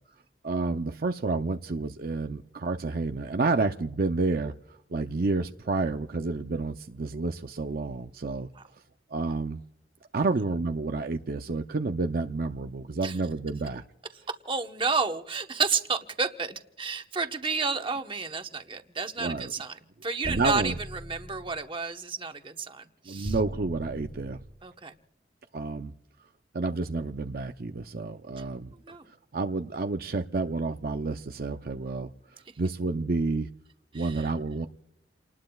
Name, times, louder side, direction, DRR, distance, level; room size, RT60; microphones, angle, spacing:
voice 1, 0.4-8.5 9.1-9.6 10.1-13.8 19.2-19.5 20.2-20.8 23.1-24.4 25.5-25.9 26.5-28.7 29.3-32.1 32.6-33.5 33.9-34.7, right 3 dB, 55° right, 6 dB, 0.6 m, -30 dB
voice 2, 14.4-19.8 20.0-23.3 24.6-24.9 28.8-29.1 33.9-34.3, right 4 dB, 30° right, 6 dB, 1.0 m, -31 dB
sound 1, 20.2-21.7 23.2-24.7, equal, 5° right, 0.9 m, -38 dB
29.5 x 19.5 x 2.3 m, 0.90 s
head